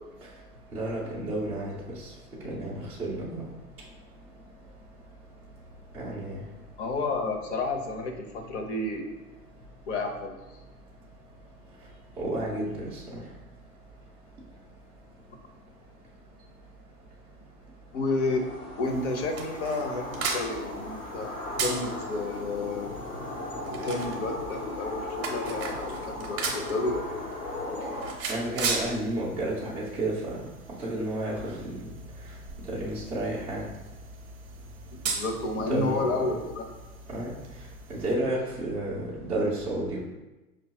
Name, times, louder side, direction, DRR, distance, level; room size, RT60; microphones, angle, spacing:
voice 1, 0.7-1.7 2.4-3.4 5.9-6.4 12.2-13.0 28.3-30.3 30.8-31.9 32.7-33.6 35.7-36.4 37.1-37.3 37.9-40.0, right 1 dB, 5° right, -9 dB, 0.3 m, -31 dB
voice 2, 6.8-9.1 9.9-10.3 17.9-18.4 18.8-22.9 23.8-27.1 35.0-36.6, left 2 dB, 50° left, 3 dB, 0.8 m, -31 dB
sound 1, 18.0-28.1, left 1 dB, 80° left, 1.1 m, -37 dB
sound 2, 18.8-38.2, right 4 dB, 30° right, 0.7 m, -38 dB
5.4 x 2.3 x 2.9 m, 1.1 s
figure-of-eight pair, 105°, 46 cm